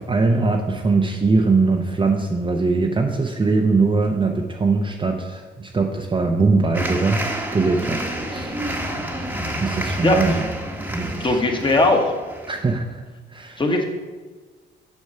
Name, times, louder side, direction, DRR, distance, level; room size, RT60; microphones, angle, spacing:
voice 1, 0.0-7.2 7.5-8.0 8.3-8.6 9.6-10.5 10.9-11.4 12.5-13.0 13.3-13.6, right 3 dB, 25° right, 2 dB, 0.7 m, -21 dB
sound 1, 6.7-12.6, right 1 dB, 10° right, 1.2 m, -29 dB
voice 2, 11.2-12.1 13.6-13.8, left 2 dB, 25° left, 3 dB, 1.4 m, -18 dB
8.1 x 5.3 x 5.5 m, 1.3 s
cardioid pair, 90°, 20 cm